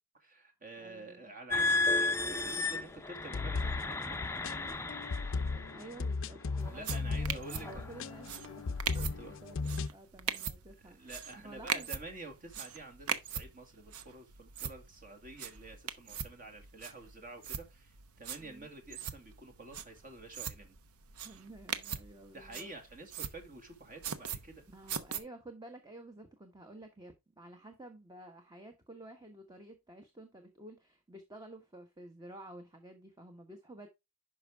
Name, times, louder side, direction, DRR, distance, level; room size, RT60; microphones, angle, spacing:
voice 1, 0.1-4.3 6.7-8.2 9.0-9.3 10.8-20.8 22.3-24.6, right 2 dB, 40° right, 2.0 m, -49 dB
voice 2, 0.8-1.2 5.7-9.0 9.3-11.9 18.4-18.7 21.2-22.7 24.7-33.9, right 1 dB, 20° right, 1.1 m, -51 dB
sound 1, 1.5-6.0 6.7-6.9 7.5-7.8, left 3 dB, 10° left, 0.6 m, -33 dB
sound 2, 3.2-9.9, left 4 dB, 60° left, 0.5 m, -37 dB
sound 3, 6.6-25.2, right 7 dB, 85° right, 0.9 m, -42 dB
11.0 x 5.4 x 3.4 m
head